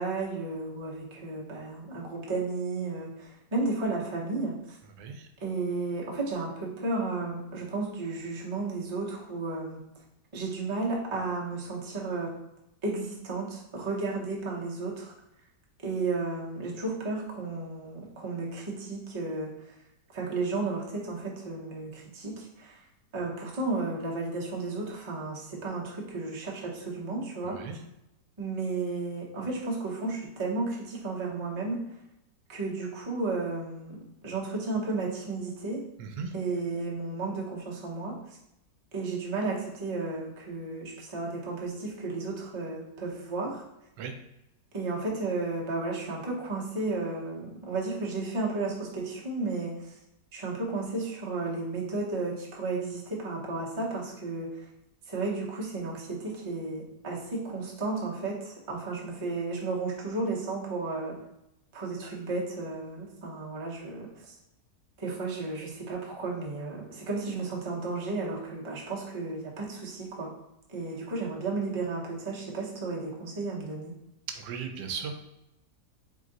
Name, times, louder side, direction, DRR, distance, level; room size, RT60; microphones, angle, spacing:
voice 1, 0.0-4.8 5.4-9.8 10.3-12.3 12.8-15.1 15.8-19.5 20.1-22.8 23.1-27.6 28.4-31.8 32.5-34.0 34.2-35.8 36.3-38.1 38.9-43.6 44.7-50.0 50.3-54.5 55.1-61.1 61.7-64.3 65.0-70.3 70.7-73.9, right 3 dB, 30° right, -3 dB, 0.5 m, -33 dB
voice 2, 74.4-75.1, right 6 dB, 80° right, 5 dB, 1.2 m, -36 dB
3.8 x 3.1 x 3.8 m, 0.87 s
omnidirectional pair, 1.9 m